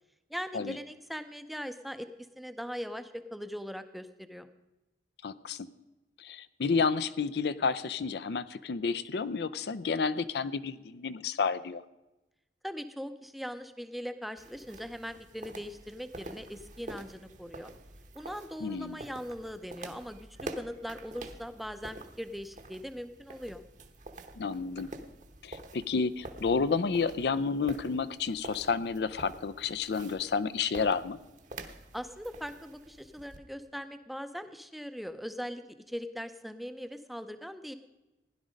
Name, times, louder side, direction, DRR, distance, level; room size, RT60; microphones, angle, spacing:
voice 1, 0.3-2.1 2.4-4.5 12.6-17.7 18.1-23.6 31.9-35.6 35.9-37.7, equal, ahead, 10 dB, 0.6 m, -40 dB
voice 2, 5.2-5.7 6.2-11.8 18.6-19.0 24.4-24.9 25.4-31.2, left 5 dB, 65° left, 15 dB, 0.5 m, -30 dB
sound 1, 14.4-33.4, right 2 dB, 45° right, 1.1 m, -47 dB
16.0 x 11.0 x 5.1 m, 1.0 s
head